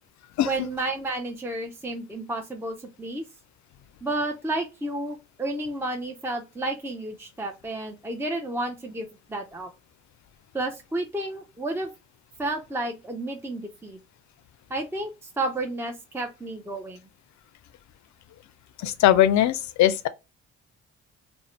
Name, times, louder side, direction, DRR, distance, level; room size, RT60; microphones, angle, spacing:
voice 1, 0.5-3.2 4.0-9.7 10.5-11.9 12.4-14.0 14.7-15.1 15.4-17.0, right 2 dB, 10° right, 0.5 m, -31 dB
voice 2, 18.8-20.1, left 12 dB, 60° left, 0.5 m, -20 dB
2.6 x 2.1 x 3.0 m
supercardioid pair, 50°, 32 cm